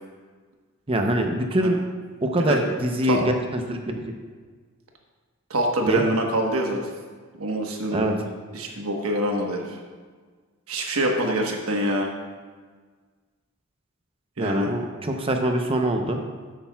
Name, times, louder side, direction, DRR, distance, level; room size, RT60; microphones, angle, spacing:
voice 1, 0.9-1.8 2.2-3.8 4.1-4.2 5.9-6.0 7.9-8.1 14.4-16.2, right 1 dB, 25° right, 4 dB, 0.7 m, -24 dB
voice 2, 5.5-6.8 7.4-8.2 8.5-9.8 10.7-12.1 14.4-14.7, right 1 dB, 85° right, 1 dB, 1.2 m, -25 dB
12.5 x 8.7 x 2.3 m, 1.5 s
head